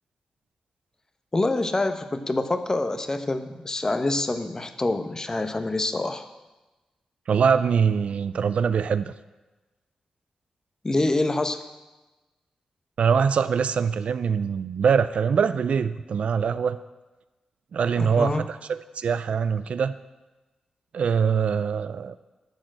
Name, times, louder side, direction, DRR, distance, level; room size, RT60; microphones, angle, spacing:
voice 1, 1.3-6.2 10.8-11.6 18.0-18.5, left 2 dB, 30° left, 9 dB, 0.9 m, -26 dB
voice 2, 7.3-9.1 13.0-16.8 17.7-19.9 20.9-22.2, right 6 dB, 75° right, 13 dB, 0.3 m, -23 dB
12.0 x 4.4 x 7.6 m, 1.1 s
cardioid pair, 60°, 2 cm